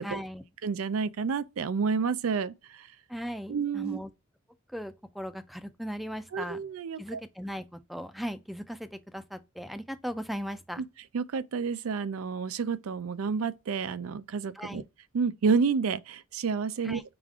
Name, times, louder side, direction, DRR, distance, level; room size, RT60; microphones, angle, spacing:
voice 1, 0.0-0.4 3.1-4.1 4.7-6.6 7.0-10.8 14.5-14.9 16.8-17.0, equal, ahead, 0.4 m, -38 dB
voice 2, 0.6-2.9 3.5-4.0 6.3-7.2 11.1-14.8 15.1-17.0, right 5 dB, 85° right, 0.4 m, -29 dB
5.0 x 2.4 x 3.5 m
head